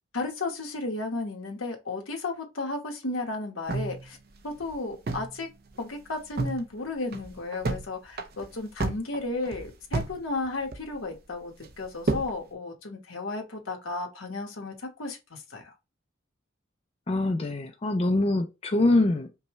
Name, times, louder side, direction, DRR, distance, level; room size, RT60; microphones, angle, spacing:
voice 1, 0.1-4.2 4.4-5.5 5.8-15.7, left 2 dB, 80° left, 1.2 m, -34 dB
sound 1, 3.7-5.4 5.7-5.8 6.1-6.6 7.0-7.8 8.1-10.2 10.4-11.1 11.6-12.4, right 3 dB, 50° right, 0.6 m, -31 dB
voice 2, 17.1-19.4, left 2 dB, 30° left, 0.4 m, -24 dB
5.3 x 2.2 x 3.0 m
head